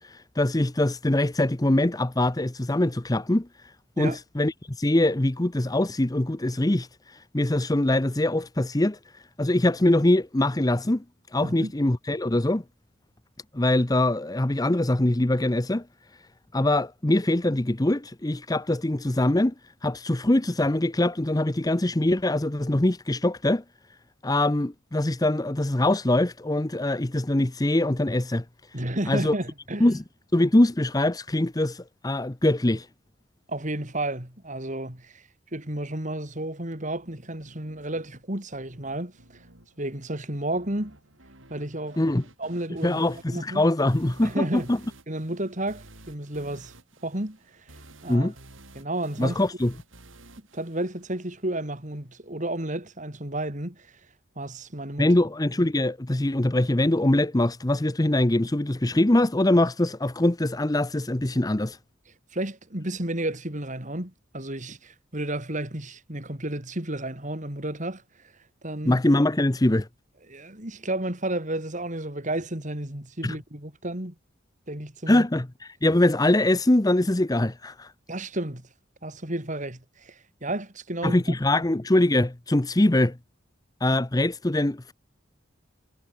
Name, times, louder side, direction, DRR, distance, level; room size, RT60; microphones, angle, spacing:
voice 1, 0.0-3.5 4.0-9.0 9.4-11.0 11.3-12.6 13.5-15.8 16.5-19.5 19.8-23.6 24.2-28.4 29.1-29.3 29.8-30.0 30.3-32.9 42.0-42.2 42.8-44.8 48.1-48.3 49.2-49.7 55.0-61.8 68.9-69.9 73.2-73.4 75.1-75.5 75.8-77.9 81.0-83.2 83.8-84.9, left 1 dB, 20° left, 0.8 m, -23 dB
voice 2, 28.7-30.0 33.5-35.2 35.5-39.4 39.8-41.0 41.5-42.0 42.4-43.7 44.2-44.7 45.1-46.7 47.0-47.4 48.0-48.3 48.8-49.4 50.5-53.9 54.4-55.1 62.3-68.0 68.6-69.0 70.3-74.1 74.7-75.3 78.1-78.7 79.0-81.2, right 1 dB, 40° right, 4.0 m, -32 dB
sound 1, 36.7-51.7, right 2 dB, 75° right, 7.9 m, -53 dB
head